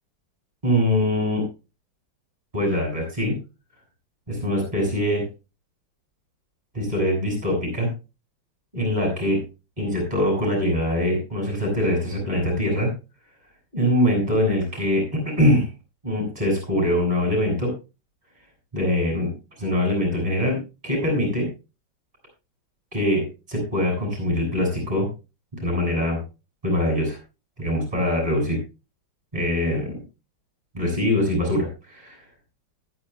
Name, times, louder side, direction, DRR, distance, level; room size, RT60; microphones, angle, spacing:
voice 1, 0.6-1.4 2.5-3.4 4.3-5.2 6.7-7.9 8.7-9.4 9.8-12.9 13.7-15.7 16.0-17.7 18.7-19.3 19.6-21.5 22.9-23.2 23.5-25.1 25.6-26.2 26.6-27.2 27.6-28.6 29.3-29.9 30.7-32.1, left 1 dB, 20° right, 1 dB, 7.8 m, -23 dB
20.5 x 11.0 x 2.3 m, 0.29 s
omnidirectional pair, 2.1 m